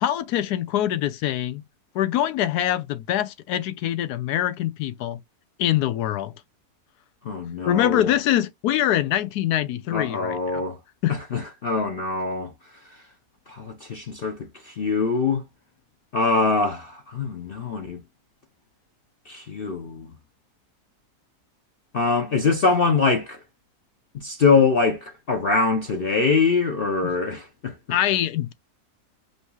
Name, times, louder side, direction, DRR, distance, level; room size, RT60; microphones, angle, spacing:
voice 1, 0.0-1.6 1.9-5.2 5.6-6.3 7.7-10.6 11.0-11.2 27.0-27.1 27.9-28.5, left 12 dB, 90° left, 1.1 m, -24 dB
voice 2, 7.2-8.1 9.9-10.8 11.1-12.5 12.8-13.0 13.5-15.4 16.1-18.0 19.3-20.1 21.9-23.4 24.1-27.7, left 4 dB, 50° left, 0.7 m, -23 dB
5.4 x 2.9 x 2.3 m
omnidirectional pair, 1.7 m